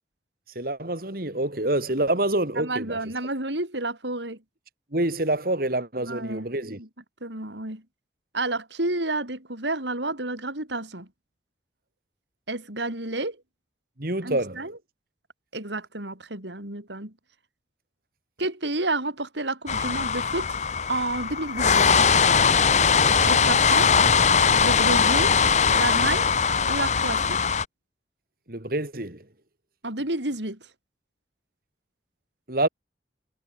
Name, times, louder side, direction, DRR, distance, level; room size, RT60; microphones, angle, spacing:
voice 1, 0.5-3.0 4.9-6.8 14.0-14.6 28.5-29.2 32.5-32.7, right 1 dB, 55° right, 2.9 m, -27 dB
voice 2, 2.6-4.4 6.0-6.5 6.8-6.9 7.2-7.8 8.3-11.1 12.5-13.4 14.2-14.8 15.5-17.1 18.4-20.6 20.9-22.0 23.2-23.9 24.6-25.4 25.7-26.3 26.7-27.4 29.8-30.6, right 2 dB, 80° right, 6.6 m, -30 dB
sound 1, 19.7-27.6, left 6 dB, 40° left, 1.0 m, -20 dB
head